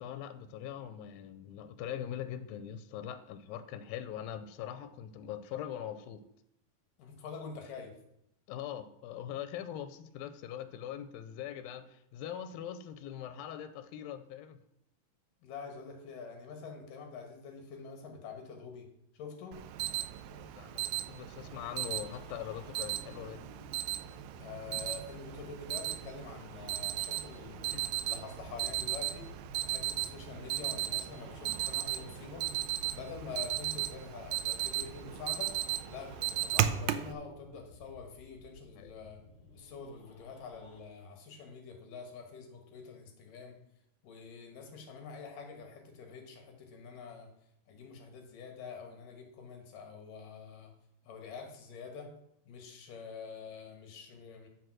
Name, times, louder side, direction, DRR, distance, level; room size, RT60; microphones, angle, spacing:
voice 1, 0.0-6.2 8.5-14.6 20.3-23.5 27.7-27.9 38.8-38.9, left 10 dB, 90° left, 12 dB, 2.4 m, -42 dB
voice 2, 7.0-7.9 15.4-18.9 19.1-19.6 24.4-27.7 28.0-29.4 29.6-32.5 32.9-35.5 35.9-39.2 39.5-43.6 44.0-47.3 47.7-50.7 51.0-52.1 52.5-54.5, left 5 dB, 75° left, 3 dB, 3.0 m, -46 dB
Alarm, 19.5-37.1, right 13 dB, 85° right, 2.3 m, -36 dB
sound 1, 21.4-40.8, left 3 dB, 55° left, 2.6 m, -55 dB
14.0 x 4.7 x 6.2 m, 0.78 s
omnidirectional pair, 4.0 m